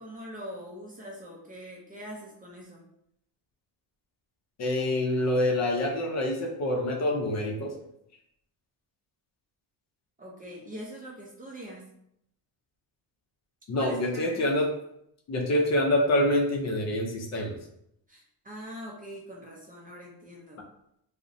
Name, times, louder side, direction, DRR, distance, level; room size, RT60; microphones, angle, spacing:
voice 1, 0.0-2.8 10.2-11.9 13.8-14.5 18.1-20.6, equal, 20° right, -4 dB, 0.4 m, -43 dB
voice 2, 4.6-7.7 13.7-14.7 15.3-17.6, left 1 dB, 40° left, 0 dB, 0.5 m, -26 dB
2.5 x 2.0 x 2.5 m, 0.76 s
cardioid pair, 125°, 41 cm